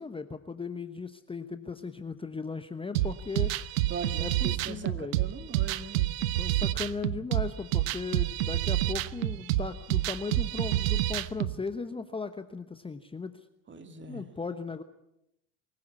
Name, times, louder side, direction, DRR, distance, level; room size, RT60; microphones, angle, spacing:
voice 1, 0.0-3.5 4.1-5.2 6.3-13.5 14.1-14.8, left 4 dB, 15° left, 10 dB, 1.1 m, -37 dB
sound 1, 2.9-11.5, right 14 dB, 70° right, 1.0 m, -28 dB
voice 2, 3.9-6.1 13.7-14.3, right 5 dB, 25° right, 7 dB, 2.6 m, -40 dB
23.5 x 16.0 x 8.3 m, 0.82 s
hypercardioid pair, 80°, 41 cm